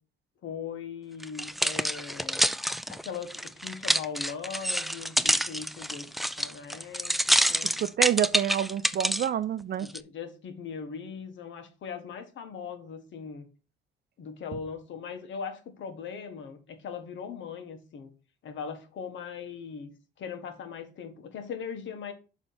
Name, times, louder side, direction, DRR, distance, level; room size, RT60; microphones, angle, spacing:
voice 1, 0.4-2.5 2.9-6.1 6.4-7.8 9.8-13.5 14.2-18.1 18.4-19.9 20.2-22.1, left 6 dB, 70° left, 1.4 m, -39 dB
sound 1, 1.2-9.3 9.9-10.0, equal, ahead, 0.3 m, -27 dB
voice 2, 7.6-9.9, right 10 dB, 55° right, 0.6 m, -28 dB
7.2 x 3.3 x 5.6 m
cardioid pair, 90°, 20 cm